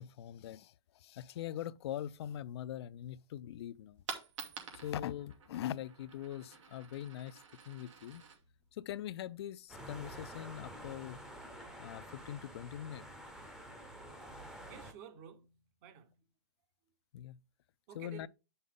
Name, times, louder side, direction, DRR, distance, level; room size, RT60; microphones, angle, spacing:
voice 1, 0.0-4.0 4.7-8.2 8.7-11.2 11.8-13.0 17.1-17.4 17.9-18.3, left 11 dB, 60° left, 0.4 m, -42 dB
Coin (dropping), 3.7-9.7, right 6 dB, 90° right, 2.6 m, -50 dB
sound 1, 9.7-14.9, right 1 dB, 5° right, 0.7 m, -49 dB
voice 2, 14.7-16.3 17.9-18.3, right 8 dB, 35° right, 0.9 m, -53 dB
9.4 x 5.5 x 3.6 m
supercardioid pair, 165°, 15 cm